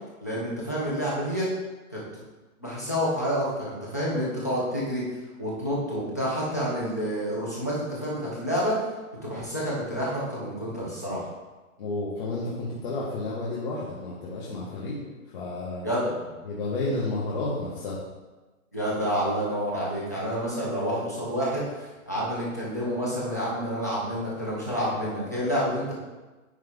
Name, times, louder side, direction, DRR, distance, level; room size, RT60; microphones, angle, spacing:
voice 1, 0.2-1.5 1.9-2.0 2.6-5.0 5.4-8.8 9.2-11.2 15.8-16.3 18.7-25.9, equal, 15° left, -7 dB, 0.4 m, -28 dB
voice 2, 11.8-15.0 15.3-15.9 16.4-18.0, left 2 dB, 40° left, -7 dB, 1.2 m, -31 dB
9.6 x 3.3 x 3.5 m, 1.2 s
hypercardioid pair, 165°, 43 cm